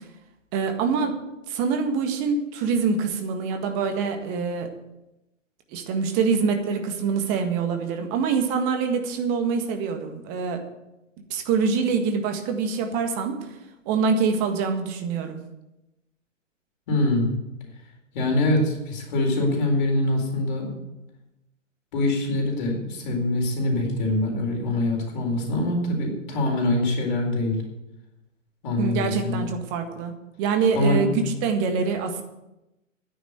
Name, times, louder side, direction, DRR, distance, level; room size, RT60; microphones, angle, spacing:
voice 1, 0.5-1.2 1.5-4.7 5.7-10.6 11.3-13.4 13.8-15.4 28.8-30.1 30.4-32.2, right 5 dB, 25° right, 6 dB, 1.6 m, -25 dB
voice 2, 16.9-17.3 18.1-20.7 21.9-27.6 28.6-29.4 30.7-31.0, left 2 dB, 40° left, 2 dB, 4.4 m, -24 dB
11.0 x 10.0 x 8.1 m, 0.94 s
figure-of-eight pair, 125°, 38 cm